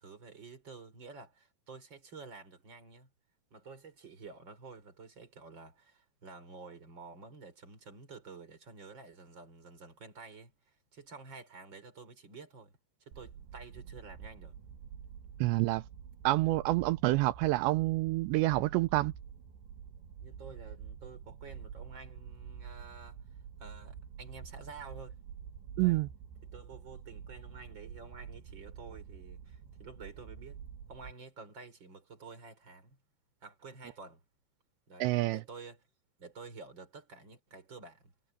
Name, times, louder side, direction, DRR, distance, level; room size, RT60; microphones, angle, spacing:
voice 1, 0.0-3.1 3.5-12.7 13.0-14.5 20.2-23.2 23.6-25.2 25.7-26.0 26.4-30.6 30.9-33.0 33.4-34.2 34.9-35.8 36.2-38.1, right 4 dB, 25° right, 4.9 m, -50 dB
sound 1, 13.1-31.1, right 7 dB, 65° right, 4.0 m, -48 dB
voice 2, 15.4-15.8 16.2-19.1 25.8-26.1 35.0-35.4, right 19 dB, 85° right, 2.6 m, -28 dB
omnidirectional pair, 5.7 m